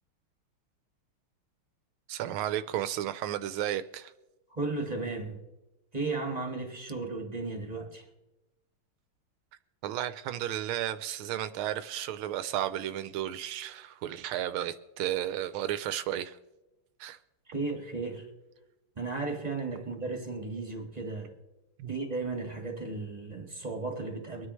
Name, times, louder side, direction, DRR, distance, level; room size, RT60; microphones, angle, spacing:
voice 1, 2.1-4.1 9.8-16.4 17.0-17.2 21.8-21.9, right 12 dB, 80° right, 12 dB, 1.4 m, -33 dB
voice 2, 4.5-5.4 5.9-8.0 17.5-18.3 18.9-21.3 21.9-24.5, right 3 dB, 20° right, 2 dB, 1.6 m, -35 dB
24.0 x 9.7 x 3.1 m, 1.0 s
omnidirectional pair, 2.4 m